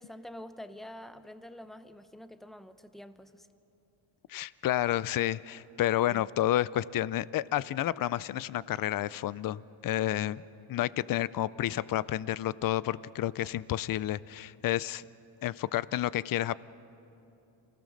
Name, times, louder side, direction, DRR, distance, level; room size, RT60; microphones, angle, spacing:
voice 1, 0.0-3.5 6.1-6.3, left 1 dB, ahead, 11 dB, 0.6 m, -47 dB
voice 2, 4.3-10.4 10.7-15.0 15.4-16.5, left 13 dB, 45° left, 19 dB, 0.5 m, -30 dB
27.5 x 17.0 x 6.5 m, 2.9 s
cardioid pair, 135°, 47 cm